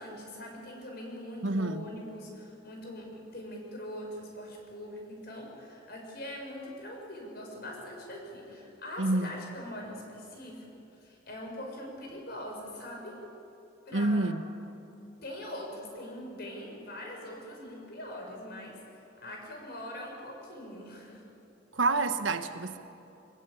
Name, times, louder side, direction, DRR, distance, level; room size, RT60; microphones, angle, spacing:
voice 1, 0.0-13.2 13.9-14.3 15.2-21.2, left 1 dB, 55° left, 1 dB, 6.4 m, -42 dB
voice 2, 1.4-1.9 9.0-9.3 13.9-14.4 21.7-22.8, right 2 dB, 90° right, 9 dB, 1.3 m, -28 dB
24.5 x 20.0 x 8.7 m, 2.8 s
head